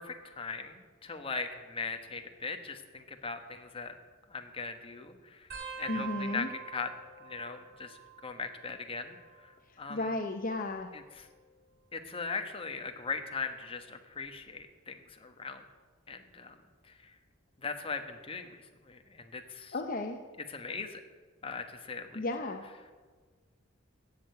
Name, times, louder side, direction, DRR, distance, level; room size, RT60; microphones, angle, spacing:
voice 1, 0.0-3.9 4.3-5.5 5.8-6.9 7.2-9.5 9.8-10.1 10.9-11.3 11.9-15.6 16.1-16.6 16.9-17.1 17.6-19.7 20.5-21.0 21.4-22.2, left 4 dB, 30° left, 6 dB, 1.2 m, -39 dB
sound 1, 5.5-8.7 9.0-9.6 10.6-12.0 12.7-13.0 14.2-14.6 16.1-16.2, right 7 dB, 55° right, 3.6 m, -47 dB
voice 2, 5.9-6.5 9.9-10.9 19.7-20.2 22.1-22.6, left 2 dB, 45° left, 5 dB, 0.8 m, -34 dB
16.0 x 6.8 x 8.3 m, 1.4 s
head